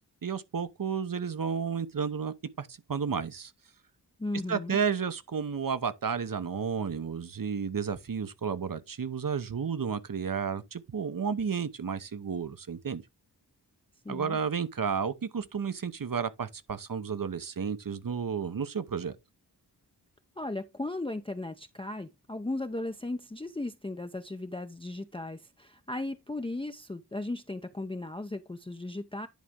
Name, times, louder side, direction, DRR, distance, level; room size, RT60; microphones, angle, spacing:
voice 1, 0.2-3.5 4.5-13.0 14.1-19.2, right 6 dB, 55° right, 0.9 m, -32 dB
voice 2, 4.2-4.8 14.0-14.4 20.4-29.3, left 2 dB, 15° left, 0.6 m, -36 dB
10.5 x 4.1 x 3.6 m
wide cardioid pair, 60°, 41 cm